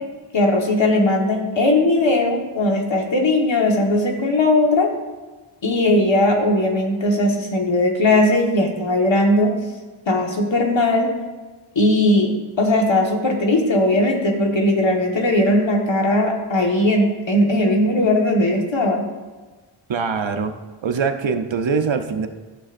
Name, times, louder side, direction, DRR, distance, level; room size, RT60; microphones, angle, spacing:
voice 1, 0.3-4.9 5.6-9.5 10.1-11.1 11.7-19.0, left 1 dB, 65° left, 1 dB, 1.6 m, -18 dB
voice 2, 19.9-20.5 20.8-22.3, right 5 dB, 65° right, 7 dB, 0.8 m, -22 dB
11.5 x 7.4 x 2.6 m, 1.3 s
cardioid pair, 45°, 49 cm